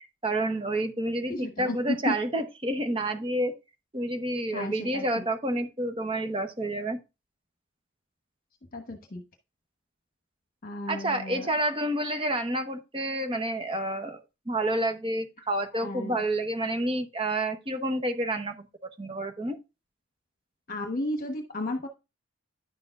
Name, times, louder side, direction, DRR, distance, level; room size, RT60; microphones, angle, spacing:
voice 1, 0.0-3.6 3.9-7.0 10.9-18.7 19.0-19.6, right 1 dB, 25° right, 0.9 m, -29 dB
voice 2, 1.3-2.2 4.5-5.2 8.7-9.2 10.6-11.5 15.7-16.2 20.7-21.9, left 1 dB, 40° left, 1.1 m, -33 dB
10.5 x 6.8 x 2.4 m
head